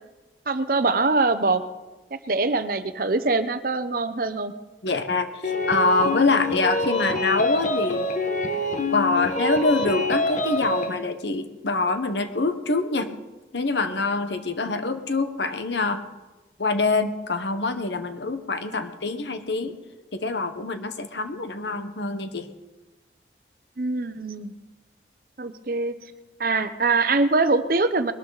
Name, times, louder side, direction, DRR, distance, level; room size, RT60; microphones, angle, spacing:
voice 1, 0.5-1.6 2.1-4.5 18.7-18.8 23.8-24.5 25.4-26.0 26.4-28.1, right 3 dB, 50° right, 11 dB, 0.8 m, -23 dB
voice 2, 4.8-8.1 8.9-13.1 13.5-16.0 16.6-19.8 20.1-22.5, left 3 dB, 75° left, 9 dB, 1.2 m, -25 dB
sound 1, 5.4-10.9, left 2 dB, 45° left, 1.4 m, -26 dB
21.0 x 12.5 x 4.1 m, 1.1 s
head